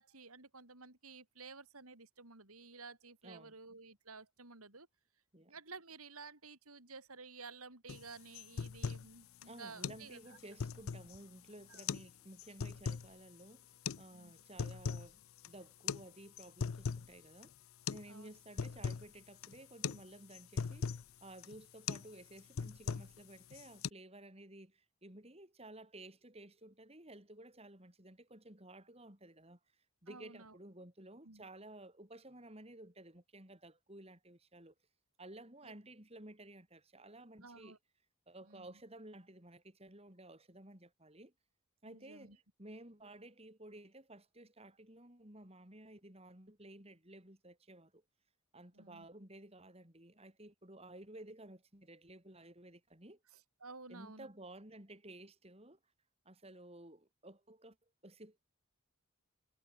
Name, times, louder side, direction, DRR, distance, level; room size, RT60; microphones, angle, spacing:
voice 1, 0.0-4.9 5.5-10.4 11.7-11.8 14.1-14.3 18.1-18.3 30.1-30.5 31.2-31.4 35.6-35.7 37.4-37.8 38.4-38.7 41.9-42.4 48.7-49.1 53.3-54.3, right 4 dB, 90° right, 5.8 m, -53 dB
voice 2, 3.2-3.5 5.3-5.5 9.5-17.6 17.9-29.6 30.0-34.7 35.2-37.8 38.3-41.3 41.8-48.0 48.5-53.2 53.9-55.8 56.3-57.8 58.0-58.4, right 1 dB, 30° right, 3.9 m, -54 dB
sound 1, 7.9-8.0 8.3-9.1 9.4-9.5 9.8-10.0 10.4-11.2 11.7-12.1 12.4-13.1 13.8-14.0 14.4-15.1 15.4-15.5 15.9-16.0 16.4-17.1 17.4-17.5 17.9-18.1 18.3-19.1 19.4-19.6 19.8-20.0 20.3-21.0 21.4-21.6 21.9-22.1 22.4-23.2 23.5-23.9, left 6 dB, 70° left, 0.5 m, -39 dB
head